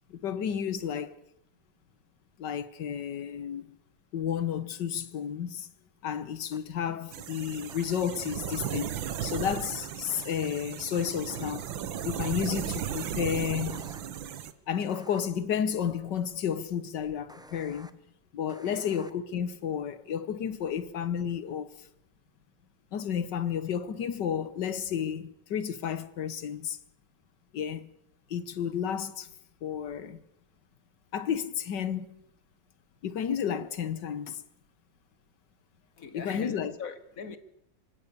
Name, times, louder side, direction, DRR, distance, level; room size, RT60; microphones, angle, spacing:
voice 1, 0.2-1.1 2.4-3.7 4.1-5.7 6.0-11.7 12.0-13.8 14.7-18.0 18.3-21.7 22.9-26.8 27.5-27.9 28.3-29.3 29.6-30.2 31.1-32.1 33.0-34.4 36.1-36.7, left 8 dB, 65° left, 1.8 m, -32 dB
sound 1, 6.5-6.6 7.7-7.8 10.1-10.3 11.3-11.5 13.7-14.0 14.9-15.2 17.3-17.9 18.5-19.1, right 1 dB, 5° right, 0.3 m, -50 dB
sound 2, 7.1-14.5, right 9 dB, 90° right, 1.9 m, -36 dB
voice 2, 36.0-37.4, left 6 dB, 50° left, 1.7 m, -41 dB
25.5 x 16.5 x 6.9 m
omnidirectional pair, 2.1 m